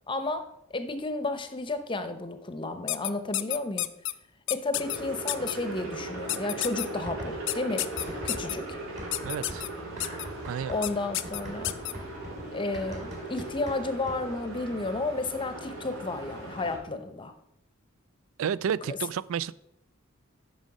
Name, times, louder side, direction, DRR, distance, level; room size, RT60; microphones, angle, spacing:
voice 1, 0.1-3.9 4.5-7.9 8.2-8.8 10.7-11.8 12.5-17.3 18.9-19.0, left 2 dB, 25° left, 9 dB, 0.7 m, -32 dB
sound 1, 2.9-4.1 4.5-5.0 5.3-5.5 6.3-6.9 7.5-8.5 9.1-9.7 10.0-10.2 10.8-10.9 11.1-11.9, left 17 dB, 60° left, 0.4 m, -30 dB
sound 2, 4.7-16.8, right 2 dB, 90° right, 3.9 m, -39 dB
sound 3, 7.1-7.7 8.0-14.4, equal, 35° right, 2.1 m, -43 dB
voice 2, 9.2-9.6 10.5-10.7 18.4-19.5, right 7 dB, 70° right, 21 dB, 0.3 m, -31 dB
9.4 x 6.3 x 4.9 m, 0.79 s
head